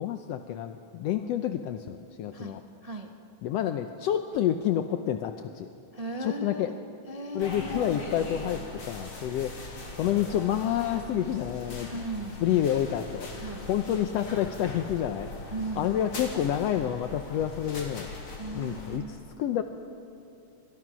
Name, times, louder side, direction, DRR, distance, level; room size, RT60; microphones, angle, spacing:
voice 1, 0.0-2.6 3.4-5.7 6.2-6.7 7.3-9.5 9.9-11.9 12.4-13.3 13.7-15.3 15.8-18.1 18.5-19.0 19.4-19.6, left 10 dB, 75° left, 8 dB, 1.5 m, -28 dB
voice 2, 2.3-3.1 5.9-6.8 7.1-7.6 11.9-12.4 13.4-13.7 15.5-15.9 18.4-19.1, right 2 dB, 55° right, 3 dB, 0.4 m, -37 dB
sound 1, 7.4-19.0, left 2 dB, 40° left, 4.0 m, -40 dB
29.5 x 25.0 x 6.2 m, 2.8 s
omnidirectional pair, 3.7 m